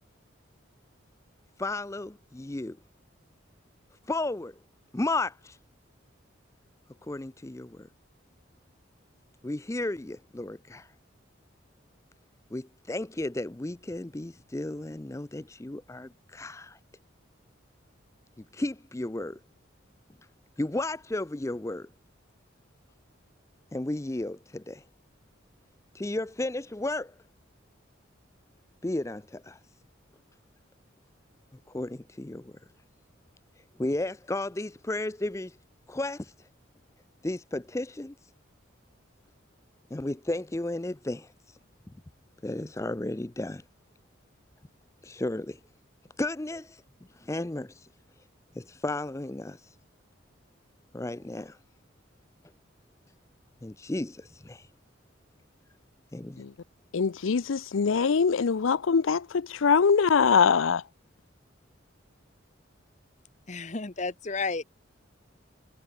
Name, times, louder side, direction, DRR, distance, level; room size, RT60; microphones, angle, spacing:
voice 1, 1.6-2.8 4.1-4.6 4.9-5.6 7.1-7.9 9.4-10.9 12.5-16.8 18.5-19.4 20.6-21.9 23.7-24.8 25.9-27.1 28.8-29.6 31.7-32.5 33.8-35.6 35.9-36.3 37.2-38.1 39.9-41.3 42.4-43.6 45.0-45.6 46.2-46.8 47.1-47.9 48.6-49.7 50.9-51.6 53.6-54.7 56.1-56.4, left 2 dB, 15° left, 0.5 m, -33 dB
voice 2, 56.9-60.8, left 5 dB, 80° left, 0.5 m, -23 dB
voice 3, 63.5-64.6, left 4 dB, 35° left, 1.1 m, -32 dB
head